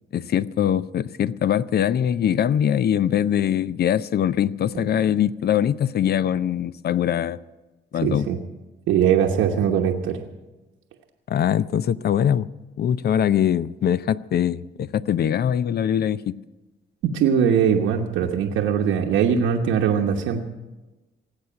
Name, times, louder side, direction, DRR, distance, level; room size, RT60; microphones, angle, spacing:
voice 1, 0.1-7.4 7.9-8.3 11.3-12.5 12.8-16.4, left 9 dB, 55° left, 17 dB, 0.6 m, -22 dB
voice 2, 8.0-8.4 8.9-10.2 17.1-20.4, right 8 dB, 85° right, 1 dB, 1.1 m, -21 dB
18.0 x 8.2 x 8.6 m, 1.1 s
cardioid pair, 90°, 20 cm